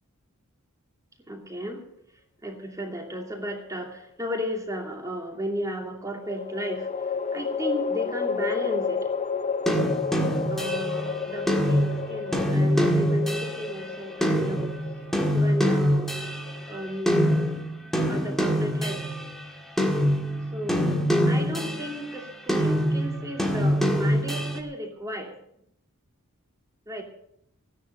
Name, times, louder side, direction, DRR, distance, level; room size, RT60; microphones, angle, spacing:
voice 1, 1.3-1.8 2.4-6.9 7.3-9.1 10.5-14.7 15.3-16.1 16.7-17.2 18.1-19.1 20.5-25.3 26.9-27.0, equal, 15° right, 1 dB, 2.7 m, -34 dB
sound 1, 3.1-4.0 6.2-17.5, left 6 dB, 35° left, 0.8 m, -32 dB
sound 2, 9.7-16.8 17.1-19.4 19.8-22.1 22.5-24.6, equal, ahead, 1.7 m, -25 dB
15.5 x 10.0 x 6.8 m, 0.74 s
head